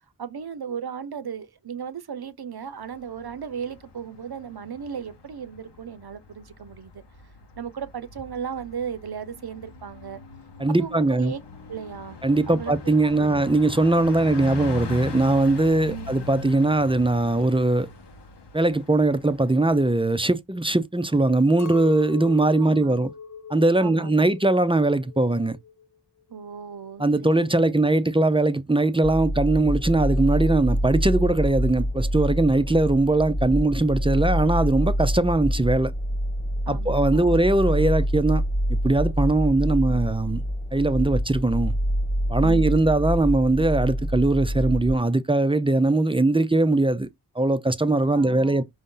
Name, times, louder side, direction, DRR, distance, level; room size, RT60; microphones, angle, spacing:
voice 1, 0.2-7.0 7.6-10.2 10.8-11.4 11.7-12.2 12.5-13.4 15.9-16.1 22.6-23.1 23.8-24.4 26.3-27.1 27.6-27.9 36.7-37.5 42.4-43.0 48.1-48.6, right 7 dB, 65° right, 0.7 m, -36 dB
Bus, 2.8-19.9, left 3 dB, 75° left, 0.9 m, -40 dB
voice 2, 10.6-11.3 12.2-17.9 18.5-23.1 23.5-25.6 27.0-35.9 36.7-38.4 38.7-40.4 40.7-41.7 42.3-47.1 47.4-48.6, right 2 dB, 15° right, 0.4 m, -21 dB
Chink clink, 21.6-26.0 26.2-27.0, left 8 dB, 45° left, 0.5 m, -41 dB
sound 1, 29.0-45.0, equal, 10° left, 1.3 m, -26 dB
5.2 x 2.7 x 3.7 m
wide cardioid pair, 55°, 41 cm